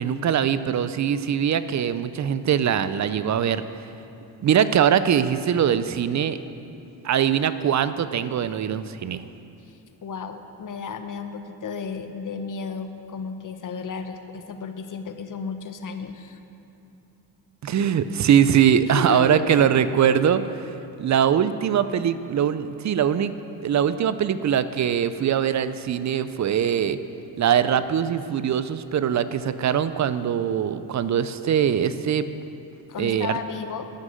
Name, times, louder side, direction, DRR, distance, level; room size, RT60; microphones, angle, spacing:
voice 1, 0.0-3.6 4.4-6.4 7.0-9.2 17.6-20.7 21.0-23.3 23.6-27.0 27.4-32.3 33.0-33.4, right 8 dB, 40° right, 13 dB, 0.6 m, -22 dB
voice 2, 10.0-16.4 18.8-19.8 32.9-33.8, left 6 dB, 40° left, 7 dB, 1.0 m, -33 dB
13.0 x 6.3 x 7.6 m, 2.8 s
supercardioid pair, 80°, 45 cm